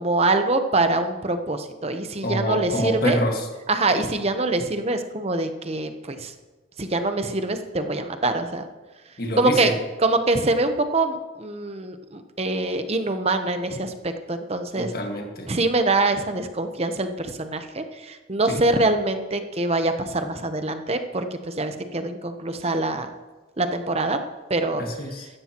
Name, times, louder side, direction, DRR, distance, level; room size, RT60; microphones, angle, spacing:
voice 1, 0.0-3.2 3.7-6.3 6.8-8.6 9.4-9.7 10.0-14.9 15.5-23.1 23.6-24.2 24.5-24.8, right 2 dB, 30° right, 7 dB, 0.8 m, -24 dB
voice 2, 2.2-3.5 9.2-9.8 14.8-15.5 18.5-18.6 24.8-25.3, equal, 50° left, 2 dB, 1.7 m, -26 dB
15.5 x 13.0 x 3.0 m, 1.2 s
head